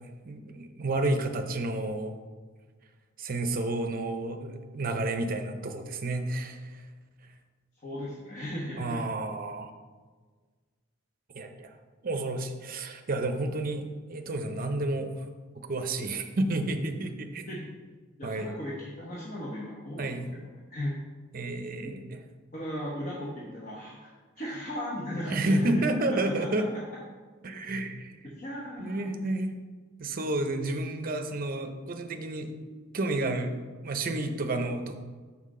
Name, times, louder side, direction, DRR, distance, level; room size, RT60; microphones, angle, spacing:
voice 1, 0.3-2.2 3.2-6.8 8.8-9.7 11.3-11.8 12.0-15.3 15.6-17.5 18.2-18.5 20.0-20.3 21.3-22.2 25.3-26.7 27.4-28.1 28.8-29.5 30.0-32.5 32.9-33.5 33.8-34.9, right 2 dB, 45° right, 7 dB, 0.6 m, -30 dB
voice 2, 7.8-9.0 17.4-17.7 18.2-21.0 21.8-22.0 22.5-26.6 28.4-29.1, equal, 40° left, -4 dB, 1.0 m, -37 dB
6.0 x 5.8 x 3.7 m, 1.4 s
head